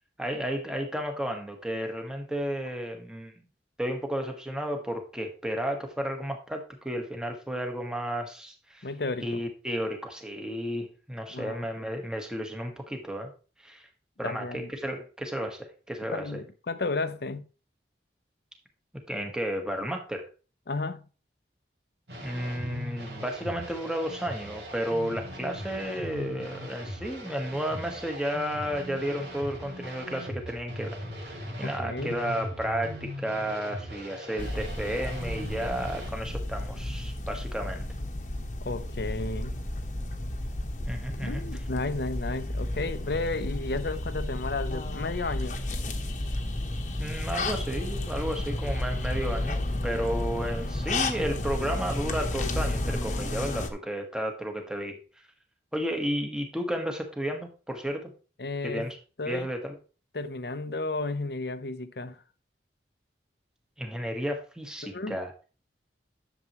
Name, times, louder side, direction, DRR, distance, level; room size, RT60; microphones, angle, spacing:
voice 1, 0.2-3.4 3.8-8.9 9.2-13.3 13.6-13.9 14.2-16.4 19.1-20.3 22.2-31.0 31.2-37.9 40.9-41.4 47.0-55.0 55.7-58.1 58.6-59.0 59.2-59.7 63.8-65.3, equal, 5° right, 1.3 m, -32 dB
voice 2, 8.8-9.4 11.3-12.0 14.2-14.7 16.1-17.5 20.7-21.1 31.6-32.2 38.6-39.6 41.2-45.6 58.4-58.9 59.2-59.5 60.1-62.2 64.8-65.2, left 3 dB, 60° left, 0.7 m, -33 dB
sound 1, 22.1-36.1, equal, 70° right, 2.7 m, -39 dB
sound 2, 34.4-53.7, left 1 dB, 40° left, 1.1 m, -32 dB
11.0 x 7.1 x 3.0 m
head